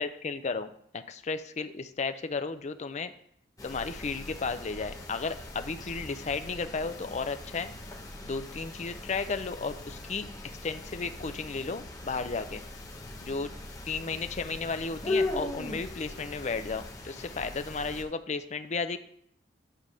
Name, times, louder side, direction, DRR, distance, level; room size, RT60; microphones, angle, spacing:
voice 1, 0.0-3.1 3.6-7.7 8.2-12.6 13.2-13.5 13.9-19.0, left 4 dB, 40° left, 10 dB, 0.5 m, -34 dB
sound 1, 3.6-18.0, left 2 dB, 20° left, 1.0 m, -39 dB
9.8 x 3.5 x 6.3 m, 0.67 s
head